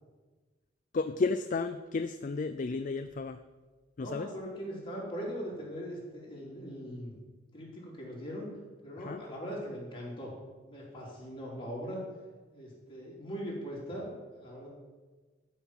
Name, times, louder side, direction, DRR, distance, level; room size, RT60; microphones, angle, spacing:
voice 1, 0.9-3.4 4.0-4.3 9.0-9.2, left 3 dB, 45° left, 11 dB, 0.4 m, -32 dB
voice 2, 4.0-7.1 7.5-8.5 8.8-10.3 10.6-12.0 12.5-14.7, equal, 30° left, -4 dB, 3.7 m, -40 dB
12.5 x 5.8 x 7.3 m, 1.3 s
head